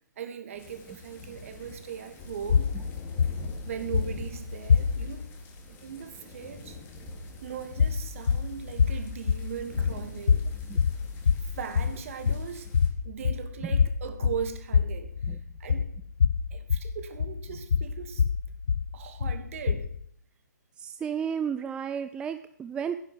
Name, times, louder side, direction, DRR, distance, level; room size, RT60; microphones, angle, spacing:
voice 1, 0.2-2.7 3.6-5.3 5.7-6.8 7.4-10.4 11.4-12.7 13.0-15.9 16.5-18.3 18.9-19.9, right 8 dB, 45° right, 7 dB, 2.5 m, -39 dB
sound 1, 0.6-12.9, left 1 dB, 20° left, 3.1 m, -45 dB
sound 2, 2.5-5.3 7.7-20.1, left 6 dB, 60° left, 1.1 m, -26 dB
voice 2, 20.8-23.0, right 7 dB, 10° right, 9 dB, 0.5 m, -32 dB
16.0 x 10.5 x 7.8 m, 0.67 s
figure-of-eight pair, 130°, 10 cm